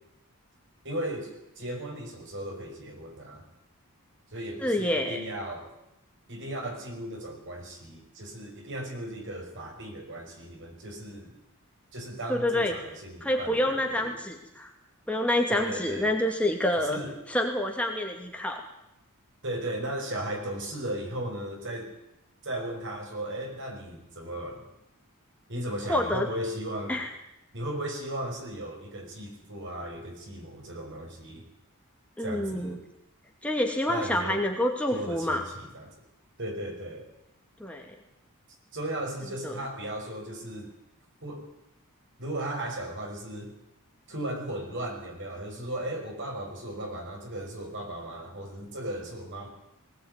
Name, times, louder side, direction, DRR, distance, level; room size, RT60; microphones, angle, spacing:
voice 1, 0.8-3.5 4.3-5.7 6.3-11.4 11.9-14.2 15.5-16.1 16.9-17.1 19.4-22.0 22.4-24.7 25.5-27.0 27.5-31.4 32.2-32.8 33.9-34.4 34.9-36.0 36.4-37.1 38.7-40.7 41.2-41.5 42.2-43.5 44.1-49.5, right 1 dB, 55° right, 3 dB, 5.9 m, -36 dB
voice 2, 4.6-5.2 12.3-12.8 13.2-14.7 15.1-17.0 17.3-18.6 25.9-26.3 26.9-27.1 32.2-32.8 33.4-35.5 37.6-37.9 39.4-39.6, left 1 dB, 5° left, 2 dB, 2.4 m, -27 dB
20.0 x 18.5 x 9.6 m, 0.84 s
head